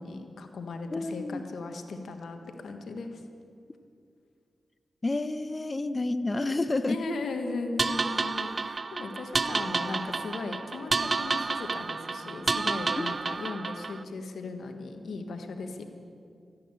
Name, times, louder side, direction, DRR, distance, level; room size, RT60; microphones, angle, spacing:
voice 1, 0.0-3.2 6.9-15.8, left 3 dB, 80° left, 6 dB, 1.4 m, -37 dB
voice 2, 0.9-1.4 5.0-7.0 13.0-13.1, left 2 dB, 35° left, 12 dB, 0.8 m, -29 dB
sound 1, 7.8-14.0, right 4 dB, 50° right, 0.5 m, -30 dB
14.5 x 8.7 x 9.7 m, 2.4 s
supercardioid pair, 40°, 0 cm